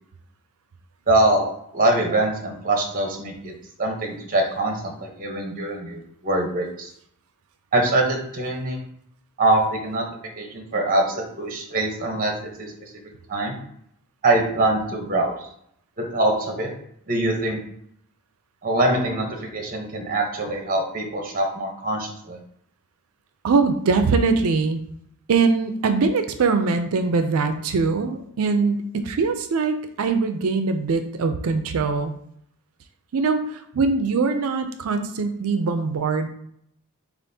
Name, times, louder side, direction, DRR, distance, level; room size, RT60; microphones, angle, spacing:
voice 1, 1.1-3.5 3.8-6.9 7.7-8.8 9.4-10.0 10.4-12.3 12.6-12.7 13.3-13.6 14.2-15.3 16.0-16.7 17.1-17.6 18.6-22.4, right 2 dB, 40° right, 2 dB, 0.8 m, -23 dB
voice 2, 23.4-24.8 25.3-32.1 33.1-36.3, right 4 dB, 80° right, 8 dB, 0.4 m, -22 dB
6.9 x 2.5 x 2.7 m, 0.70 s
head